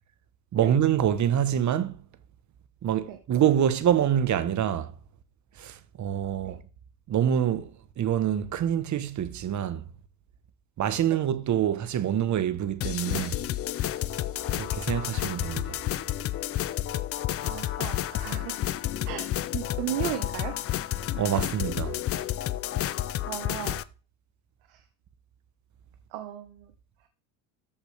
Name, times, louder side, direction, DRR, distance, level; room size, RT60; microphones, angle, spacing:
voice 1, 0.5-2.0 2.8-4.9 5.6-6.6 7.1-9.8 10.8-13.4 14.5-15.8 21.1-22.0, right 10 dB, 35° right, 1.0 m, -26 dB
sound 1, 12.8-23.8, left 13 dB, 35° left, 0.4 m, -30 dB
voice 2, 17.4-18.6 19.0-20.6 23.3-23.8 26.1-26.7, right 12 dB, 75° right, 1.4 m, -35 dB
14.0 x 5.3 x 3.3 m
cardioid pair, 130°, 48 cm